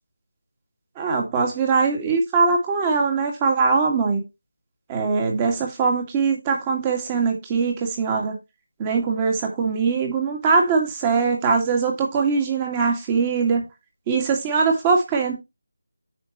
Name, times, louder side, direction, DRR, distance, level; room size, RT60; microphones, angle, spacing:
voice 1, 1.0-4.2 4.9-8.3 8.8-13.6 14.1-15.3, right 4 dB, 15° right, 2.0 m, -21 dB
9.4 x 5.9 x 3.0 m
figure-of-eight pair, 170°, 0 cm